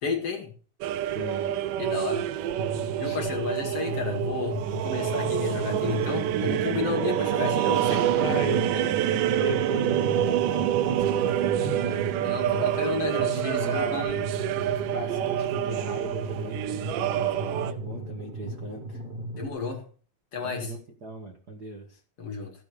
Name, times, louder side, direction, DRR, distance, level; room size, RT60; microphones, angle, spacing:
voice 1, 0.0-0.5 1.8-2.2 3.0-8.4 8.7-8.9 12.2-14.2 19.3-19.8 20.3-20.7 22.2-22.5, left 4 dB, 45° left, 2 dB, 2.6 m, -32 dB
sound 1, 0.8-17.7, right 12 dB, 75° right, 2.1 m, -27 dB
voice 2, 1.1-1.5 3.0-3.2 8.1-8.6 9.3-12.0 12.6-14.0 14.9-19.0 20.4-22.0, right 1 dB, 60° right, 3 dB, 1.0 m, -36 dB
sound 2, 2.6-19.5, right 1 dB, 25° right, 1.6 m, -36 dB
15.5 x 6.2 x 6.8 m, 0.41 s
omnidirectional pair, 4.4 m